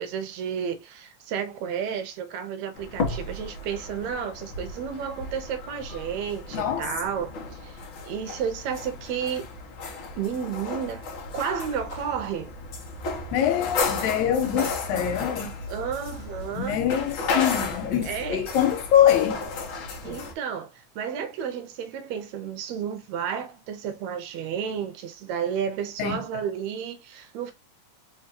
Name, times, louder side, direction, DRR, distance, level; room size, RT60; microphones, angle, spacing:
voice 1, 0.0-9.5 10.2-11.1 11.3-12.5 15.7-16.8 18.0-18.5 20.0-27.5, right 7 dB, 75° right, 1.8 m, -32 dB
sound 1, 2.8-20.3, left 4 dB, 60° left, 1.5 m, -34 dB
voice 2, 6.5-6.9 13.3-15.5 16.6-19.4 26.0-26.2, left 10 dB, 75° left, 2.4 m, -24 dB
4.6 x 3.5 x 2.8 m
omnidirectional pair, 3.4 m